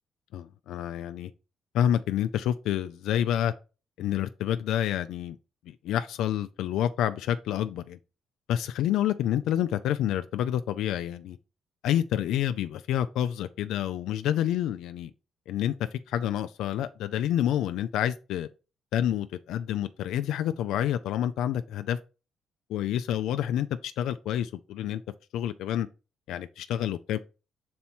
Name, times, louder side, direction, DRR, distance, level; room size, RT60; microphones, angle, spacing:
voice 1, 0.3-1.3 1.7-3.5 4.0-5.4 5.7-8.0 8.5-11.4 11.8-15.1 15.5-18.5 18.9-22.0 22.7-25.0 25.3-25.9 26.3-27.2, left 11 dB, 85° left, 0.4 m, -28 dB
5.6 x 4.3 x 4.3 m
cardioid pair, 90°, 0 cm